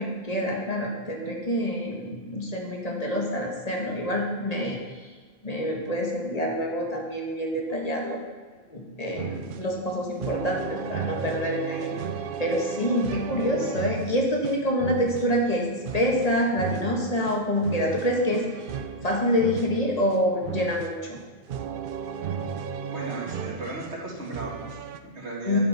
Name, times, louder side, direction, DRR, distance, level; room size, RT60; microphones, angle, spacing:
voice 1, 0.0-4.8 5.4-8.2 8.7-12.0 12.4-18.4 19.0-21.2 25.5-25.6, equal, 35° left, 0 dB, 1.8 m, -26 dB
sound 1, 9.2-25.0, right 7 dB, 60° right, 0.7 m, -35 dB
voice 2, 22.9-25.6, right 2 dB, 80° right, -3 dB, 2.4 m, -36 dB
11.0 x 5.3 x 5.8 m, 1.5 s
omnidirectional pair, 1.1 m